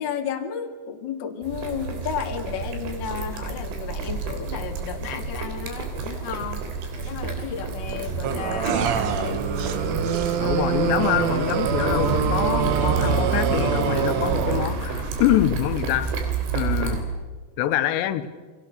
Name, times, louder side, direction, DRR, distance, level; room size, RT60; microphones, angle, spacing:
voice 1, 0.0-6.7 7.0-9.5, left 7 dB, 40° left, 3 dB, 1.8 m, -33 dB
sound 1, 1.4-17.0, right 4 dB, 85° right, 5.5 m, -29 dB
sound 2, 8.2-14.9, right 7 dB, 65° right, 1.7 m, -25 dB
voice 2, 10.4-16.2 16.5-17.0 17.6-18.3, left 12 dB, 80° left, 10 dB, 3.1 m, -25 dB
29.0 x 24.5 x 6.6 m, 1.5 s
omnidirectional pair, 5.1 m